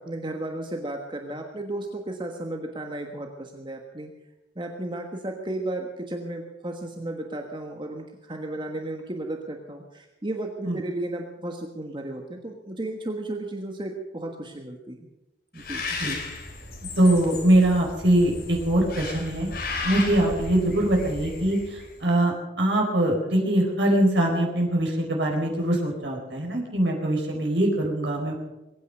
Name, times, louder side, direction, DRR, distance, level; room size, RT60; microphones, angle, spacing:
voice 1, 0.0-4.1 4.5-15.1 15.5-15.8, right 1 dB, 25° right, 3 dB, 1.4 m, -34 dB
Bird, 15.6-22.0, left 3 dB, 55° left, 4.0 m, -35 dB
voice 2, 17.0-19.5 19.8-28.3, right 1 dB, 90° right, 0 dB, 4.5 m, -22 dB
22.0 x 9.5 x 6.7 m, 1.0 s
head